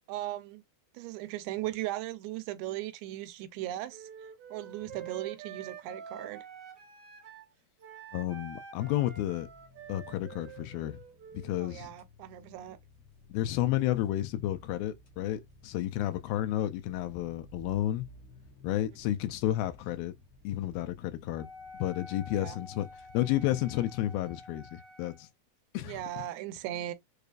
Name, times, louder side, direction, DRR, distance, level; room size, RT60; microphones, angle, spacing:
voice 1, 0.1-0.6 0.9-4.1 4.5-6.5 11.6-12.8 22.3-22.6 25.8-26.9, right 14 dB, 85° right, 2.4 m, -38 dB
Wind instrument woodwind instrument, 3.9-7.5 7.8-11.6, right 8 dB, 50° right, 2.0 m, -47 dB
voice 2, 8.1-9.5 9.9-11.0 11.4-12.0 13.3-18.1 18.6-20.1 20.4-21.5 21.8-22.9 23.1-25.3 25.7-26.2, left 14 dB, 80° left, 2.2 m, -31 dB
sound 1, 9.4-23.9, equal, 55° left, 1.2 m, -57 dB
Wind instrument woodwind instrument 2, 21.3-25.3, left 2 dB, 15° left, 0.9 m, -49 dB
6.6 x 2.3 x 2.3 m
omnidirectional pair, 4.5 m